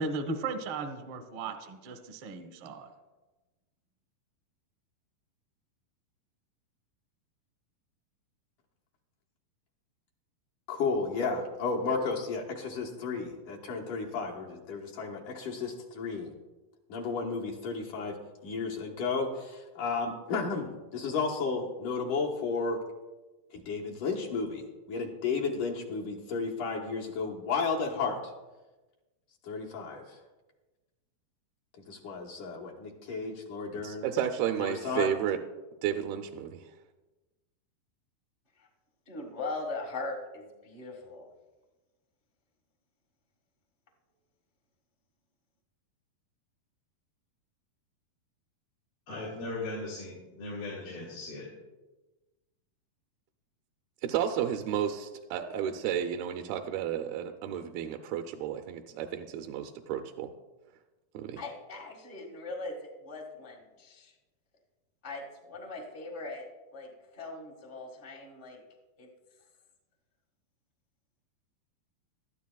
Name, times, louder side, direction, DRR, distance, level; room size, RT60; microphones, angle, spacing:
voice 1, 0.0-2.9, right 3 dB, 65° right, 7 dB, 1.3 m, -36 dB
voice 2, 10.7-16.3 16.9-18.2 18.4-22.8 23.5-28.2 29.4-30.2 31.9-34.1 34.6-35.1, left 4 dB, 70° left, -2 dB, 2.5 m, -33 dB
voice 3, 33.8-35.4 35.8-36.7 54.0-60.3 61.1-61.4, right 9 dB, 90° right, 5 dB, 2.5 m, -32 dB
voice 4, 39.1-41.3 61.4-64.1 65.0-66.9 67.1-68.6 69.0-69.1, left 3 dB, 45° left, -1 dB, 0.6 m, -40 dB
voice 5, 49.1-51.5, left 2 dB, 85° left, -4 dB, 4.2 m, -38 dB
18.5 x 13.0 x 2.3 m, 1.2 s
omnidirectional pair, 4.2 m